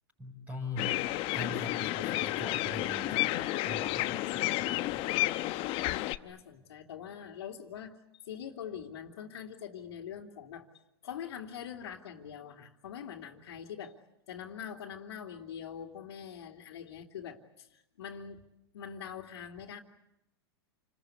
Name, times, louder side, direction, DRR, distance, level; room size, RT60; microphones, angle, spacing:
voice 1, 0.2-1.0 1.3-5.1, left 1 dB, 10° right, 3 dB, 6.2 m, -42 dB
sound 1, 0.8-6.2, left 17 dB, 45° left, 1.0 m, -31 dB
voice 2, 5.9-10.7 11.0-14.0 14.3-18.4 18.7-19.8, left 8 dB, 75° left, -4 dB, 2.7 m, -44 dB
29.0 x 21.0 x 8.4 m, 0.88 s
hypercardioid pair, 115°, 14 cm